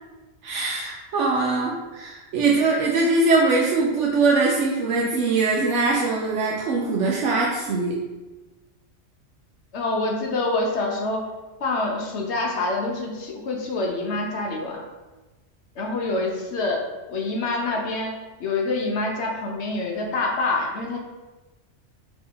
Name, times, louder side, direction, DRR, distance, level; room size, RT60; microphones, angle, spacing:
voice 1, 0.4-8.0, right 3 dB, 75° right, -3 dB, 0.9 m, -22 dB
voice 2, 9.7-11.3 11.6-14.8 15.8-16.8 17.1-18.1 18.4-21.0, left 2 dB, 65° left, 0 dB, 1.0 m, -26 dB
3.9 x 3.0 x 3.8 m, 1.2 s
omnidirectional pair, 1.3 m